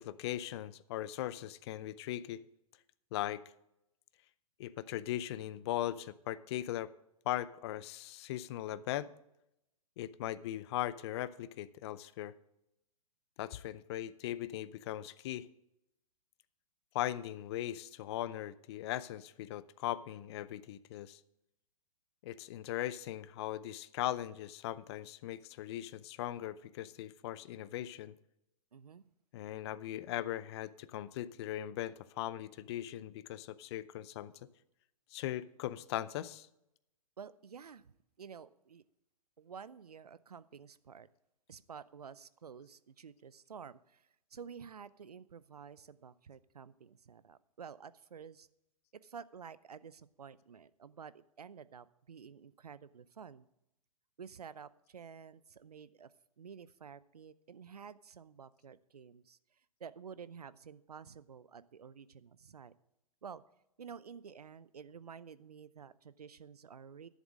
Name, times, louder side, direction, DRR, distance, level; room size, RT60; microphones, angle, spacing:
voice 1, 0.0-2.4 3.1-3.4 4.6-6.9 7.3-9.1 10.0-12.4 13.4-15.5 16.9-21.2 22.2-28.1 29.3-34.3 35.1-36.5, left 13 dB, 45° left, 18 dB, 0.5 m, -39 dB
voice 2, 28.7-29.0 37.2-37.9 38.2-38.8 39.4-41.1 41.5-48.5 48.9-53.5 54.2-56.1 56.4-59.4 59.8-62.7 63.2-63.4 63.8-67.1, right 6 dB, 85° right, 18 dB, 0.6 m, -51 dB
11.0 x 7.2 x 6.2 m, 0.84 s
hypercardioid pair, 120°, 19 cm